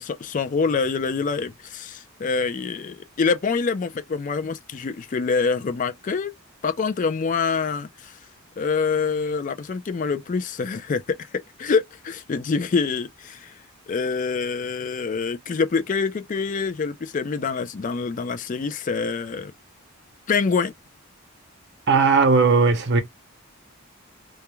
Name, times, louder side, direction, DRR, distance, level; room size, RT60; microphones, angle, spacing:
voice 1, 0.0-6.3 6.6-8.1 8.6-11.0 11.6-13.5 13.9-19.5 20.3-20.7, left 5 dB, 35° left, 0.3 m, -25 dB
voice 2, 21.9-23.0, right 4 dB, 50° right, 0.6 m, -17 dB
2.3 x 2.2 x 2.9 m
head